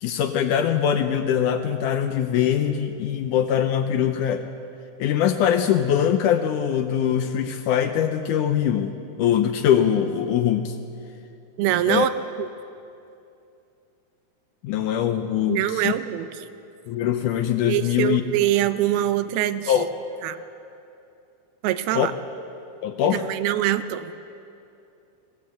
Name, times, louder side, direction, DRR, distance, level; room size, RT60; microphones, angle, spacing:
voice 1, 0.0-4.5 5.0-10.8 11.9-12.1 14.6-15.9 16.9-18.2 19.7-19.9 22.0-22.1 22.8-23.2, left 9 dB, 75° left, 7 dB, 1.9 m, -22 dB
voice 2, 11.6-12.1 12.4-12.5 15.5-16.3 17.7-19.9 20.2-20.4 21.6-22.1 23.1-24.1, right 13 dB, 85° right, 11 dB, 2.7 m, -23 dB
20.0 x 18.0 x 7.6 m, 2.7 s
omnidirectional pair, 4.3 m